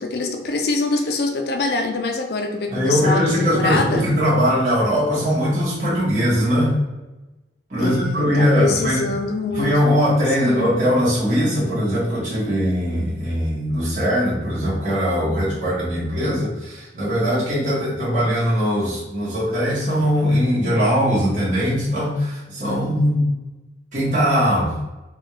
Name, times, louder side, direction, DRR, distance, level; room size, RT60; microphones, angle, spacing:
voice 1, 0.0-4.2 7.8-9.7 10.4-10.8, left 3 dB, 60° left, 4 dB, 0.4 m, -24 dB
voice 2, 2.7-6.7 7.7-9.0 9.6-23.3 23.9-24.7, equal, 40° right, -8 dB, 1.1 m, -20 dB
3.6 x 2.4 x 3.2 m, 1.0 s
head